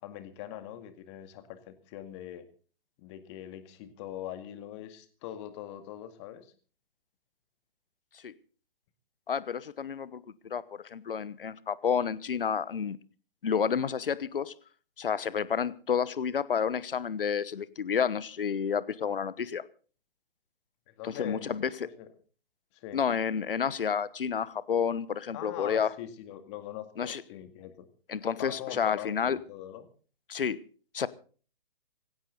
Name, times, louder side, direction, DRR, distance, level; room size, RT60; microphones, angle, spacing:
voice 1, 0.0-2.4 3.0-6.5 20.9-22.1 22.7-23.0 25.3-27.9 28.4-29.9, left 12 dB, 30° left, 9 dB, 2.1 m, -42 dB
voice 2, 9.3-10.6 10.9-13.0 13.4-14.5 15.0-19.6 21.0-21.7 22.9-25.9 27.0-27.2 28.1-29.4 30.3-30.6 30.9-31.1, left 7 dB, 65° left, 18 dB, 1.2 m, -30 dB
18.5 x 16.5 x 4.0 m, 0.40 s
figure-of-eight pair, 130°, 29 cm